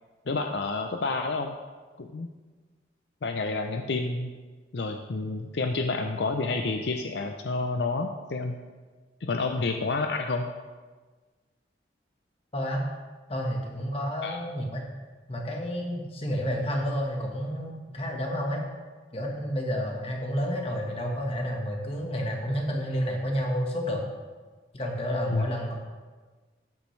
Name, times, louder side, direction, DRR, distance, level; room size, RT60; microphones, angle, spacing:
voice 1, 0.3-1.6 2.0-2.3 3.2-4.3 4.7-8.6 9.2-10.5 14.2-14.4 25.3-25.5, left 3 dB, 65° left, 5 dB, 0.5 m, -29 dB
voice 2, 12.5-12.8 13.3-14.8 15.3-18.6 19.1-24.0 24.7-25.7, equal, 30° left, 1 dB, 1.4 m, -30 dB
12.5 x 8.4 x 3.3 m, 1.4 s
head